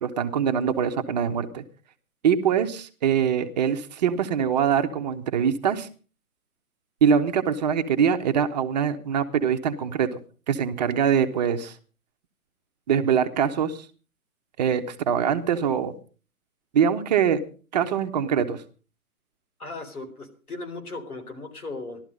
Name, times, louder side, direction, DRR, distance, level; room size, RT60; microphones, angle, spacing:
voice 1, 0.0-1.6 2.2-5.9 7.0-10.2 10.5-11.7 12.9-13.9 14.6-15.9 16.7-17.4 17.7-18.6, right 7 dB, 30° right, 7 dB, 1.0 m, -23 dB
voice 2, 19.6-22.0, left 3 dB, 80° left, 8 dB, 4.2 m, -37 dB
15.5 x 12.5 x 5.3 m, 0.38 s
hypercardioid pair, 145°, 44 cm